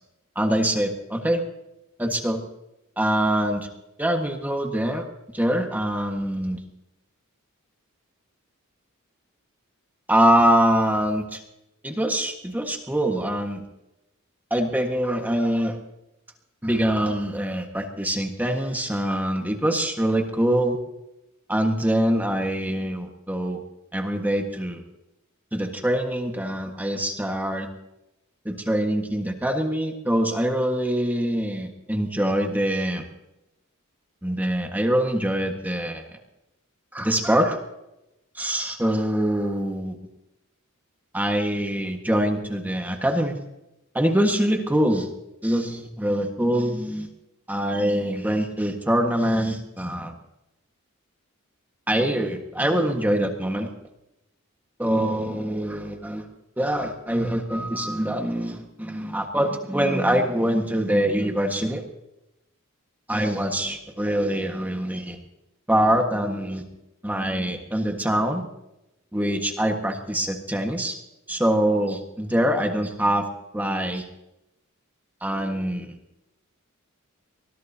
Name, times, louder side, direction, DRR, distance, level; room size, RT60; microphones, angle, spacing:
voice 1, 0.3-1.4 2.0-2.4 3.0-3.7 4.0-5.1 5.3-6.6 10.1-11.4 11.8-13.6 14.5-15.8 16.6-20.8 21.5-23.6 23.9-24.8 25.5-27.7 28.4-33.0 34.2-36.0 36.9-37.6 38.3-40.0 41.1-43.3 43.9-45.1 45.4-47.1 47.5-50.1 51.9-53.7 54.8-56.3 56.6-61.8 63.1-65.2 65.7-66.6 67.0-68.4 69.1-71.0 71.3-73.2 73.5-74.0 75.2-75.9, right 1 dB, 10° right, 3 dB, 1.5 m, -24 dB
24.0 x 21.0 x 2.8 m, 0.89 s
head